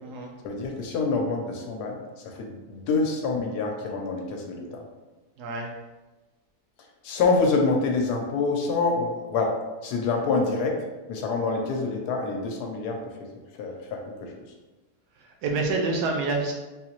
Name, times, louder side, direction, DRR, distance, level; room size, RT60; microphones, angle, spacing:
voice 1, 0.4-4.8 7.0-9.5 9.8-10.8 11.1-13.0 13.6-14.3, left 3 dB, 75° left, 1 dB, 1.1 m, -26 dB
voice 2, 5.4-5.7 15.4-16.5, right 3 dB, 80° right, 1 dB, 1.2 m, -27 dB
3.8 x 2.8 x 2.9 m, 1.1 s
omnidirectional pair, 1.8 m